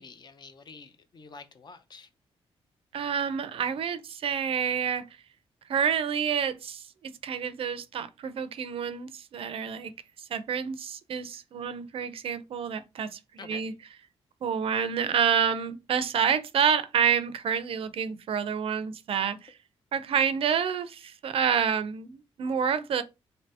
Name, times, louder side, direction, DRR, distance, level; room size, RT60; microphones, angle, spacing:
voice 1, 0.0-2.1 13.4-13.6, left 4 dB, 40° left, 0.5 m, -47 dB
voice 2, 2.9-5.1 5.7-9.9 10.2-13.7 14.4-19.5 19.9-23.0, right 7 dB, 60° right, 0.4 m, -28 dB
2.7 x 2.6 x 3.3 m
cardioid pair, 100°, 11 cm